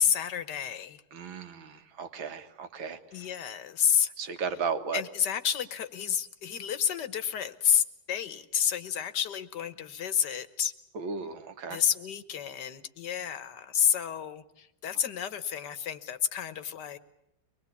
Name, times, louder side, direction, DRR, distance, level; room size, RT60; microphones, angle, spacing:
voice 1, 0.0-1.0 3.1-4.1 4.9-10.7 11.7-17.0, left 8 dB, 60° left, 13 dB, 1.7 m, -29 dB
voice 2, 1.1-3.3 4.2-5.0 10.9-11.8, right 5 dB, 80° right, 8 dB, 2.4 m, -35 dB
24.0 x 20.5 x 8.3 m, 0.84 s
omnidirectional pair, 2.1 m